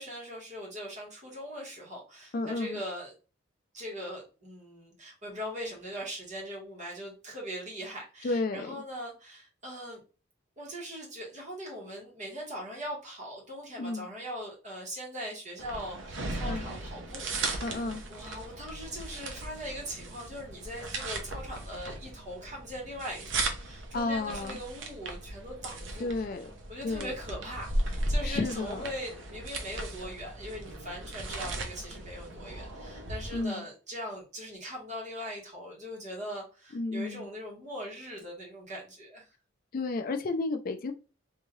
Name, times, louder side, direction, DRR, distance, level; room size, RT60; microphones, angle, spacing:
voice 1, 0.0-3.1 3.7-10.0 10.6-17.8 18.1-26.1 26.7-39.3, equal, 35° right, 1.4 m, -41 dB
voice 2, 2.3-2.8 8.2-8.8 13.8-14.1 16.4-16.6 17.6-18.0 23.9-24.6 26.0-26.5 26.8-27.1 28.2-28.9 33.3-33.7 36.7-37.3 39.7-40.9, left 3 dB, 45° left, 0.4 m, -32 dB
sound 1, 15.6-33.4, right 2 dB, 70° right, 0.7 m, -37 dB
3.6 x 2.7 x 3.1 m
head